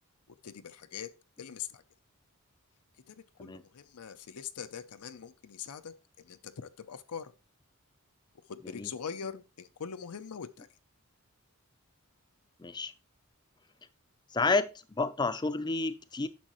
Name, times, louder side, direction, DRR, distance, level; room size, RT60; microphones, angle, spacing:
voice 1, 0.4-1.1 1.4-1.8 3.1-5.9 6.3-7.3 8.5-10.7, left 7 dB, 90° left, 0.6 m, -42 dB
voice 2, 12.6-12.9 14.3-16.3, left 3 dB, 20° left, 0.4 m, -30 dB
10.5 x 6.3 x 3.0 m
head